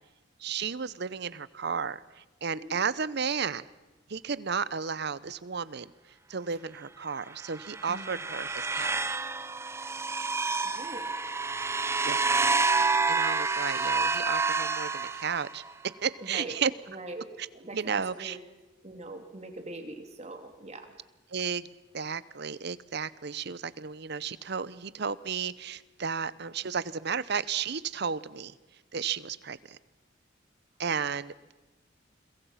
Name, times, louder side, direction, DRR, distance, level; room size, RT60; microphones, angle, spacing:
voice 1, 0.4-3.7 4.1-5.9 6.3-9.2 12.0-12.3 13.1-15.6 16.0-16.7 17.7-18.4 21.3-21.7 21.9-28.6 28.9-29.8 30.8-31.5, right 6 dB, 60° right, 18 dB, 0.8 m, -33 dB
sound 1, 7.4-15.7, right 4 dB, 15° right, 0.7 m, -29 dB
voice 2, 10.6-11.1 16.2-16.6 16.9-17.2 17.5-18.4 18.8-20.9, right 2 dB, 35° right, 5 dB, 2.9 m, -42 dB
29.5 x 22.5 x 5.8 m, 1.1 s
head